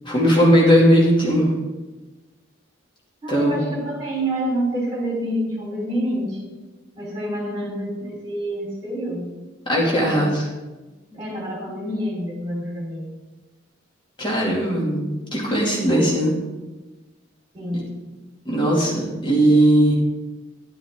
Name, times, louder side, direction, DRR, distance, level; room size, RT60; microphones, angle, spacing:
voice 1, 0.0-1.5 3.3-3.6 9.7-10.4 14.2-16.3 18.5-20.0, equal, 25° left, -4 dB, 2.5 m, -18 dB
voice 2, 3.2-6.5 7.0-9.3 10.0-10.2 11.1-13.1 17.5-17.9, right 1 dB, 20° right, -3 dB, 3.9 m, -27 dB
11.0 x 10.0 x 3.7 m, 1.2 s
head